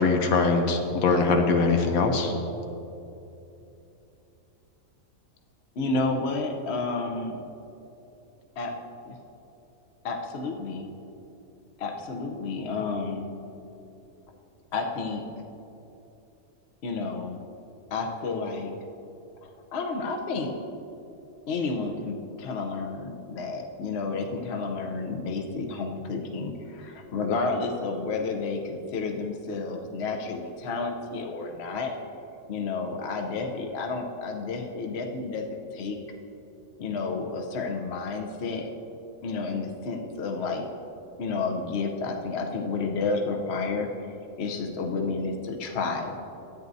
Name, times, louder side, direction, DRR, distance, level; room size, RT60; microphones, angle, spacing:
voice 1, 0.0-2.3, left 4 dB, 85° left, 4 dB, 1.2 m, -22 dB
voice 2, 5.8-7.4 8.6-8.7 9.0-9.2 10.0-10.9 11.8-13.3 14.7-15.2 16.8-17.4 17.9-18.7 19.4-20.5 21.5-32.0 32.5-36.0 36.8-38.7 39.2-40.6 41.2-46.2, left 3 dB, 55° left, 3 dB, 1.0 m, -31 dB
13.5 x 9.1 x 2.7 m, 2.8 s
omnidirectional pair, 1.5 m